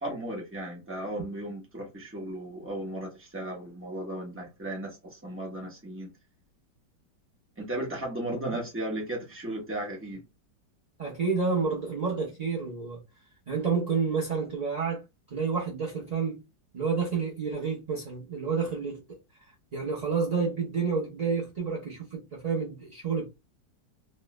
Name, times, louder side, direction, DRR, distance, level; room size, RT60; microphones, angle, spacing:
voice 1, 0.0-6.1 7.6-10.2, right 1 dB, 10° right, 0.7 m, -35 dB
voice 2, 11.0-13.0 13.5-15.0 15.3-16.4 16.7-19.2 19.7-23.3, right 5 dB, 55° right, 0.4 m, -29 dB
3.0 x 2.2 x 3.0 m
omnidirectional pair, 1.9 m